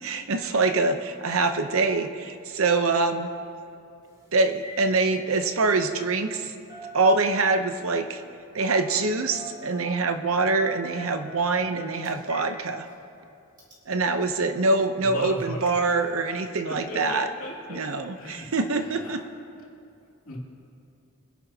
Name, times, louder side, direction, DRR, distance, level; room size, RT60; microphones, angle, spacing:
voice 1, 0.0-3.3 4.3-6.5 6.9-8.2 8.5-12.9 13.9-17.3 17.7-19.2, right 3 dB, 70° right, 8 dB, 0.8 m, -24 dB
Telephone, 4.0-4.2 4.5-4.8 5.1-6.4 6.7-7.6 8.8-9.0 9.3-10.0 10.5-12.5 12.9-13.0 13.6-13.7, right 1 dB, 20° right, 2.6 m, -43 dB
voice 2, 15.0-15.9 16.6-17.8 18.2-19.2 20.3-20.4, left 1 dB, 75° left, -3 dB, 2.6 m, -37 dB
25.5 x 11.5 x 2.9 m, 2.5 s
head